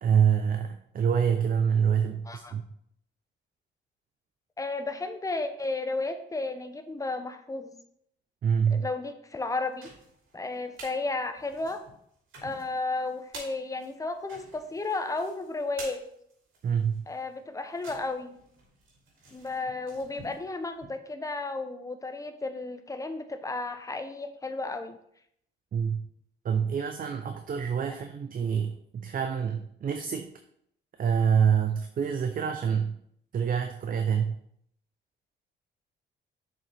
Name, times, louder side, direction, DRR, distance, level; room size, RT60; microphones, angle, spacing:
voice 1, 0.0-2.6 8.4-8.9 16.6-17.1 25.7-26.1 26.4-30.3 31.0-33.0 33.3-34.4, right 7 dB, 45° right, 6 dB, 0.6 m, -26 dB
voice 2, 4.6-7.7 8.7-9.9 10.3-11.8 12.4-16.0 17.1-18.4 19.3-25.0, left 3 dB, 15° left, 8 dB, 0.8 m, -33 dB
sound 1, 9.5-11.0 11.3-20.9, right 2 dB, 80° right, 2.9 m, -49 dB
7.1 x 5.4 x 3.4 m, 0.71 s
cardioid pair, 90°, 20 cm